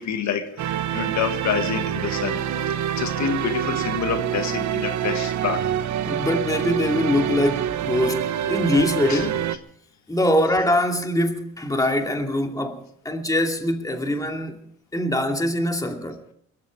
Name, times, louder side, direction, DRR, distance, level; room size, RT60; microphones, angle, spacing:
voice 1, 0.0-5.7 9.1-9.3, left 7 dB, 65° left, 1.6 m, -28 dB
sound 1, 0.6-9.6, right 10 dB, 70° right, 1.1 m, -26 dB
voice 2, 6.0-9.5 10.1-14.6 14.9-16.2, left 1 dB, 10° left, 2.5 m, -23 dB
22.0 x 13.5 x 4.7 m
cardioid pair, 90°, 30 cm